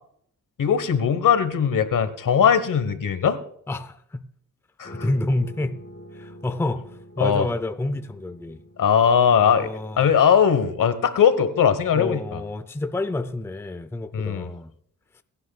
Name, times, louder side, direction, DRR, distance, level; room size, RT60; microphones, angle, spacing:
voice 1, 0.6-3.4 4.8-4.9 7.2-7.5 8.8-9.7 10.0-12.4 14.1-14.5, left 7 dB, 65° left, 1.3 m, -19 dB
voice 2, 3.7-4.3 4.9-5.8 6.1-8.6 9.4-10.1 11.9-14.7, left 2 dB, 5° left, 0.5 m, -29 dB
sound 1, 4.8-10.1, equal, 30° left, 2.9 m, -45 dB
28.0 x 9.8 x 2.3 m
wide cardioid pair, 110°, 34 cm